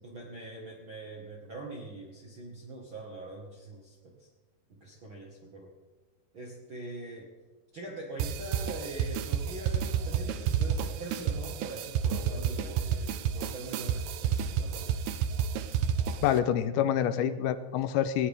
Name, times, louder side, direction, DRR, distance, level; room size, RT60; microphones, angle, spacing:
voice 1, 0.0-4.3 4.7-5.7 6.3-7.3 7.7-15.0, right 2 dB, 40° right, -2 dB, 2.0 m, -43 dB
sound 1, 8.2-16.4, right 8 dB, 85° right, 2.8 m, -30 dB
voice 2, 16.2-18.3, left 10 dB, 85° left, 11 dB, 2.7 m, -27 dB
19.5 x 18.0 x 3.7 m, 1.3 s
omnidirectional pair, 4.5 m